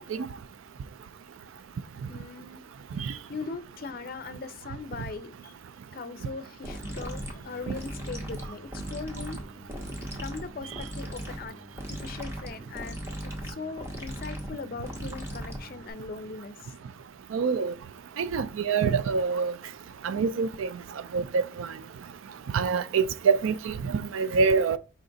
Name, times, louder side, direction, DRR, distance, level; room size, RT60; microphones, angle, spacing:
voice 1, 2.1-2.6 3.0-5.5 5.9-9.4 10.1-11.6 11.9-16.7, left 4 dB, 45° left, 0.5 m, -40 dB
sound 1, 6.6-15.9, equal, 15° right, 0.9 m, -38 dB
voice 2, 17.3-17.7 18.2-19.5 20.0-20.7 21.1-21.7 22.5-24.8, right 5 dB, 85° right, 0.4 m, -25 dB
5.0 x 2.4 x 3.8 m
head